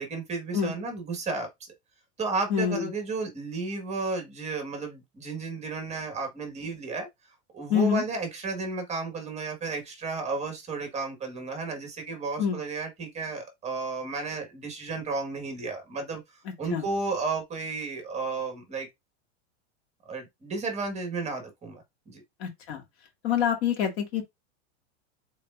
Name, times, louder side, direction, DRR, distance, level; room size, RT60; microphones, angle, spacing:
voice 1, 0.0-1.7 2.2-7.1 7.5-16.2 16.6-18.9 20.0-22.2, right 4 dB, 20° right, 1.6 m, -33 dB
voice 2, 2.5-2.9 7.7-8.0 12.4-12.6 16.7-16.8 22.4-22.8 23.2-24.2, left 8 dB, 60° left, 2.1 m, -26 dB
4.8 x 4.2 x 2.5 m
supercardioid pair, 145°, 36 cm